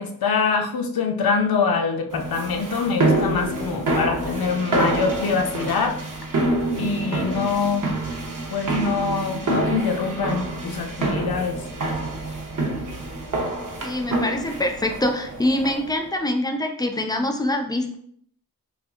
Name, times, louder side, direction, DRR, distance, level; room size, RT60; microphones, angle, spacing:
voice 1, 0.0-6.0 6.8-7.9 8.5-11.6, left 5 dB, 75° left, 5 dB, 0.6 m, -24 dB
sound 1, 2.1-16.0, right 2 dB, 55° right, 0.7 m, -27 dB
voice 2, 13.8-18.0, left 1 dB, 10° left, 4 dB, 0.4 m, -24 dB
4.3 x 2.3 x 2.4 m, 0.66 s
wide cardioid pair, 80°, 36 cm